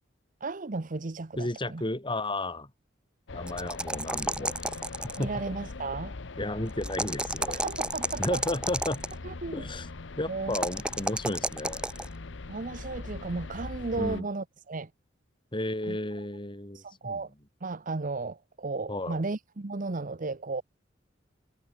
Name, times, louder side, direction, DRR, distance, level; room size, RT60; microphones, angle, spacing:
voice 1, 0.4-1.8 5.2-6.1 7.5-8.4 9.2-9.7 10.3-10.6 12.5-14.9 15.9-16.0 16.7-17.3 17.6-20.6, right 3 dB, 45° right, 0.8 m, -34 dB
voice 2, 1.4-2.7 3.3-4.6 5.2-5.3 6.4-7.6 8.2-9.0 9.5-9.9 10.2-11.8 13.9-14.3 15.5-17.2 18.9-19.2, left 1 dB, 25° left, 3.5 m, -33 dB
sound 1, 3.3-14.2, left 3 dB, 65° left, 0.9 m, -41 dB
sound 2, 3.5-5.4 6.8-9.1 10.5-12.1, right 2 dB, 5° right, 0.4 m, -31 dB
head